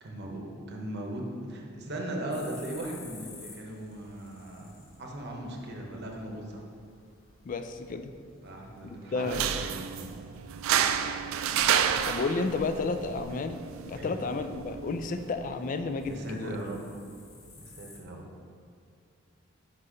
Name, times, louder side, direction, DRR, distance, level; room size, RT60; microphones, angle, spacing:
voice 1, 0.0-6.6 8.4-10.1 13.9-14.2 16.1-16.9 17.6-18.2, right 1 dB, 55° right, 0 dB, 0.9 m, -38 dB
sound 1, 2.3-18.0, left 3 dB, 75° left, 1.0 m, -54 dB
voice 2, 7.4-8.2 8.8-9.5 12.1-13.6 13.9-16.6, left 3 dB, 40° left, 8 dB, 0.3 m, -32 dB
sound 2, 9.2-16.2, right 8 dB, 80° right, 0.3 m, -31 dB
5.4 x 4.1 x 4.9 m, 2.3 s
head